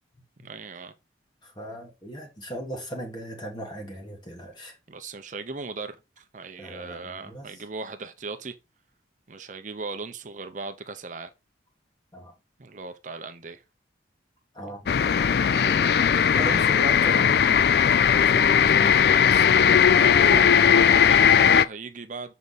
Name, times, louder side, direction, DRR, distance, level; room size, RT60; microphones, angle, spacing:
voice 1, 0.4-0.9 4.9-8.6 9.3-11.3 12.6-13.6 15.3-16.6 19.8-22.3, right 3 dB, 40° right, 0.6 m, -37 dB
voice 2, 1.4-4.8 6.6-7.4 12.1-12.3 14.5-15.2 16.4-19.7, equal, 25° left, 1.6 m, -38 dB
sound 1, 14.9-21.6, left 8 dB, 55° left, 0.3 m, -18 dB
7.0 x 4.6 x 4.0 m
head